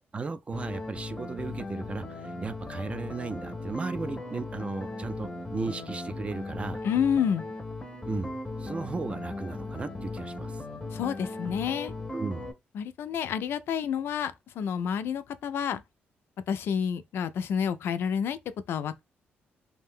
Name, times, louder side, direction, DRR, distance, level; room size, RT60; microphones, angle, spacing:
voice 1, 0.1-6.8 8.1-8.3 8.6-10.6 12.1-12.5, right 4 dB, 30° right, 0.4 m, -35 dB
sound 1, 0.5-12.5, left 2 dB, 20° left, 0.6 m, -38 dB
voice 2, 6.8-7.5 10.9-11.9 12.7-15.8 16.5-18.4 18.7-19.0, left 8 dB, 70° left, 0.4 m, -29 dB
2.6 x 2.1 x 3.5 m
cardioid pair, 100°, 4 cm